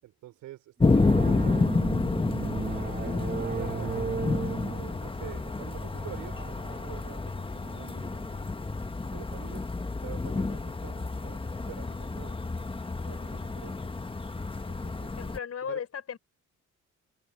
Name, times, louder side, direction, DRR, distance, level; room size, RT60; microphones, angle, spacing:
voice 1, 0.0-1.7 2.6-6.5 6.8-8.2 9.1-9.7 10.0-11.4 11.7-12.4 13.1-13.9 14.7-15.2 15.6-15.8, right 14 dB, 90° right, 5.3 m, -46 dB
sound 1, 0.8-15.4, left 3 dB, 15° left, 1.4 m, -30 dB
sound 2, 0.8-9.0, right 5 dB, 30° right, 1.9 m, -37 dB
voice 2, 15.2-16.2, left 8 dB, 55° left, 5.2 m, -35 dB
cardioid pair, 90°, 30 cm